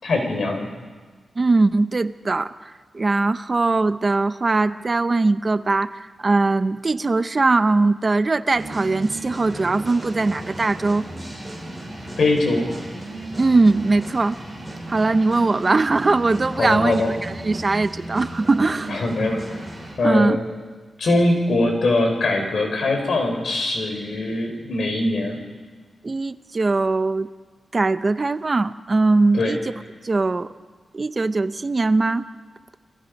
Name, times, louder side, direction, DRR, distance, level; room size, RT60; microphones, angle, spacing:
voice 1, 0.0-0.7 12.2-12.7 16.6-17.1 18.9-19.6 20.0-20.4 21.0-25.4 29.3-29.5, left 2 dB, 60° left, 3 dB, 5.1 m, -22 dB
voice 2, 1.4-2.5 2.9-11.0 13.4-14.4 14.9-19.3 20.0-20.4 26.0-27.3 27.7-29.6 30.0-30.5 30.9-32.3, right 3 dB, 30° right, 12 dB, 0.7 m, -20 dB
sound 1, 8.6-19.9, right 1 dB, ahead, 7.8 m, -35 dB
29.5 x 22.5 x 5.4 m, 1.4 s
wide cardioid pair, 125°, 0 cm